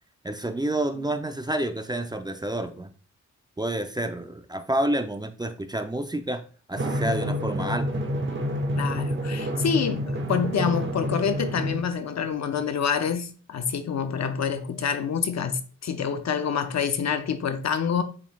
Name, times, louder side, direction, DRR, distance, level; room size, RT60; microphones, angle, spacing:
voice 1, 0.2-2.9 3.6-6.4 6.7-8.0, right 1 dB, 15° right, 0.4 m, -29 dB
Drum, 6.8-11.8, equal, 40° right, 0.9 m, -28 dB
voice 2, 8.7-18.0, left 7 dB, 65° left, 0.6 m, -27 dB
7.0 x 3.1 x 2.3 m
cardioid pair, 75°, 29 cm